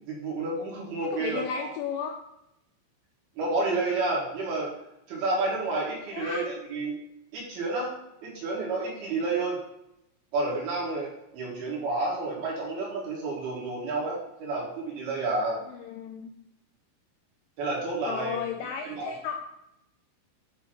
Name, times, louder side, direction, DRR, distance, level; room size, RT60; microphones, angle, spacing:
voice 1, 0.0-1.7 3.4-4.7 5.1-7.0 7.3-7.9 8.2-9.6 10.3-15.6 17.6-18.4 18.9-19.1, right 2 dB, 65° right, -4 dB, 2.8 m, -30 dB
voice 2, 1.1-2.2 6.1-6.4 15.7-16.3 18.0-19.4, left 7 dB, 85° left, 3 dB, 2.7 m, -34 dB
9.0 x 3.0 x 5.9 m, 0.82 s
omnidirectional pair, 5.8 m